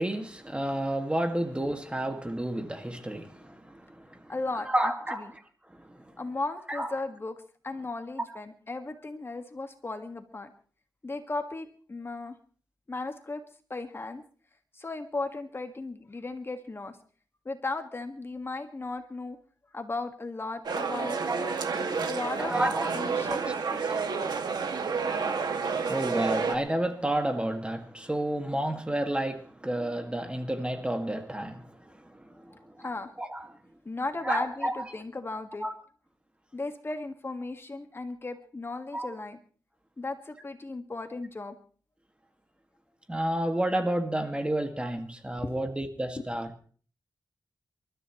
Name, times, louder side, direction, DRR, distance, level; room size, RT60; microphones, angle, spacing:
voice 1, 0.0-4.3 4.7-5.3 5.7-6.0 6.7-6.9 21.3-22.1 22.4-22.9 23.2-23.4 23.7-31.8 32.0-32.9 33.2-33.5 34.2-34.8 35.6-35.7 38.9-39.1 43.1-46.5, right 1 dB, 15° right, 2.0 m, -31 dB
voice 2, 4.3-5.3 6.2-7.4 7.6-10.5 11.0-12.4 12.9-13.4 13.7-14.2 14.7-17.0 17.5-19.4 19.7-21.2 21.9-22.5 22.9-23.8 32.5-33.1 33.9-35.7 36.5-39.4 40.0-41.5 45.4-45.7, left 3 dB, 35° left, 1.8 m, -36 dB
sound 1, 20.6-26.5, right 5 dB, 85° right, 2.1 m, -30 dB
28.0 x 13.5 x 3.1 m
wide cardioid pair, 95°, 7 cm